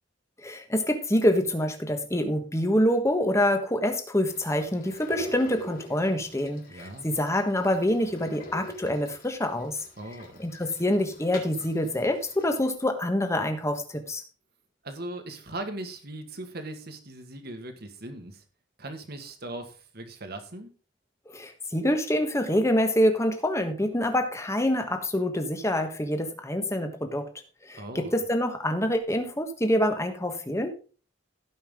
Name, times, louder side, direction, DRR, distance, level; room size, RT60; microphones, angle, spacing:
voice 1, 0.4-9.8 10.4-14.2 21.3-27.3 27.6-30.7, left 1 dB, 15° left, 6 dB, 1.4 m, -26 dB
sound 1, 4.3-12.7, left 1 dB, 50° left, 3.5 m, -44 dB
voice 2, 6.7-7.2 10.0-10.4 14.8-18.4 18.8-20.7 27.7-28.2, right 1 dB, 55° right, 7 dB, 1.7 m, -39 dB
16.5 x 5.6 x 3.8 m, 0.37 s
head